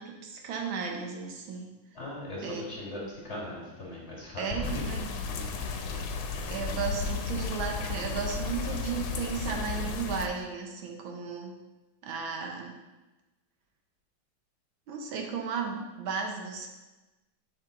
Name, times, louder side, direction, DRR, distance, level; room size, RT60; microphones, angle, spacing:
voice 1, 0.0-1.8 2.4-2.6 4.4-5.2 6.5-11.6 12.0-12.7 14.9-16.7, right 6 dB, 75° right, 2 dB, 1.7 m, -35 dB
voice 2, 1.9-5.0 5.2-5.6, left 1 dB, 35° left, -4 dB, 2.0 m, -38 dB
sound 1, 4.6-10.3, left 5 dB, 70° left, 1.4 m, -34 dB
7.2 x 6.1 x 3.8 m, 1.1 s
omnidirectional pair, 2.2 m